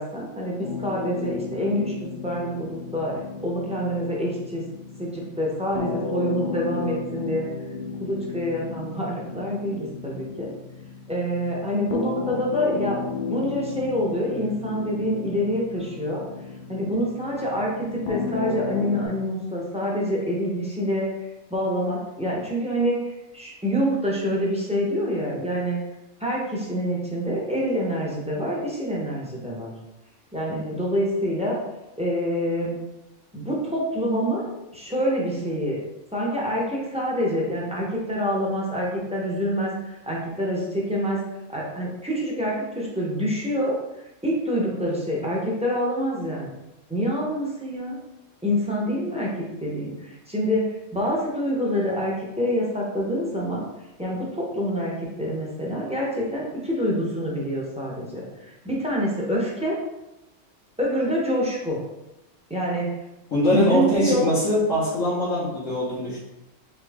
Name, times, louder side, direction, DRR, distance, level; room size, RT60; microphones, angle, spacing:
voice 1, 0.0-1.9 2.2-4.6 5.0-7.5 8.0-10.5 11.1-13.0 13.3-16.2 16.7-21.1 21.5-25.8 26.2-29.7 30.3-31.6 32.0-32.8 33.3-35.8 36.1-41.2 41.5-43.8 44.2-46.5 46.9-48.0 48.4-49.3 49.6-53.6 54.0-59.8 60.8-61.8 62.5-62.9 63.5-64.2, equal, 5° right, -4 dB, 0.7 m, -26 dB
sound 1, 0.6-19.1, left 4 dB, 55° left, 0.6 m, -34 dB
voice 2, 63.3-66.2, equal, 85° left, -10 dB, 1.6 m, -22 dB
3.7 x 2.9 x 3.4 m, 0.93 s
omnidirectional pair, 1.3 m